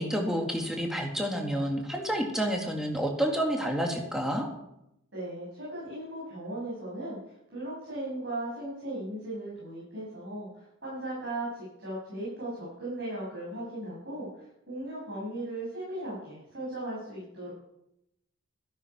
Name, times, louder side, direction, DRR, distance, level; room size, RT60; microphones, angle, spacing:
voice 1, 0.0-4.5, equal, ahead, 1 dB, 1.9 m, -29 dB
voice 2, 5.1-17.5, right 1 dB, 60° right, -7 dB, 6.9 m, -37 dB
13.5 x 12.0 x 5.9 m, 0.84 s
head